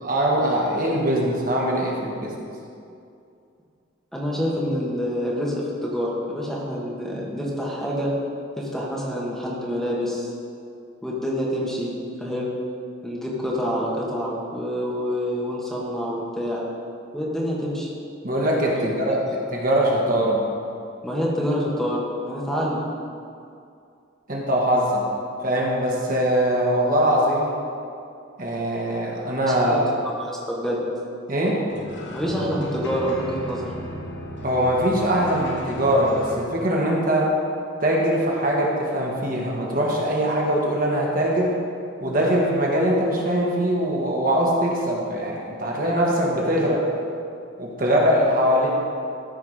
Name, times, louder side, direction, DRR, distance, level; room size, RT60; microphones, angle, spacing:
voice 1, 0.0-2.3 18.2-20.4 24.3-25.0 25.4-27.6 28.4-29.9 31.3-31.6 34.4-37.4 37.8-41.5 42.0-46.9 47.6-48.7, equal, 50° right, -3 dB, 1.5 m, -22 dB
voice 2, 4.1-8.1 8.6-10.3 11.0-11.9 12.2-12.5 13.0-16.6 17.1-17.9 18.7-18.8 19.3-19.4 21.0-22.9 29.5-29.8 30.2-30.8 32.1-33.7, equal, ahead, -5 dB, 1.5 m, -27 dB
sound 1, 31.7-36.4, equal, 65° left, 1.0 m, -36 dB
13.5 x 4.7 x 5.0 m, 2.5 s
head